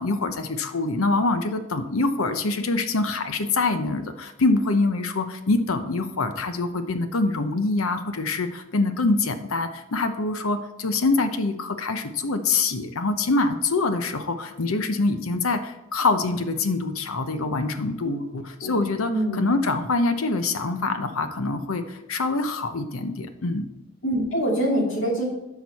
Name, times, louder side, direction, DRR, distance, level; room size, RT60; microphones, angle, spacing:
voice 1, 0.0-23.7, left 3 dB, 80° left, 9 dB, 0.8 m, -25 dB
voice 2, 19.1-19.4 24.0-25.2, right 1 dB, 65° left, -2 dB, 2.3 m, -25 dB
10.5 x 6.2 x 4.2 m, 0.92 s
head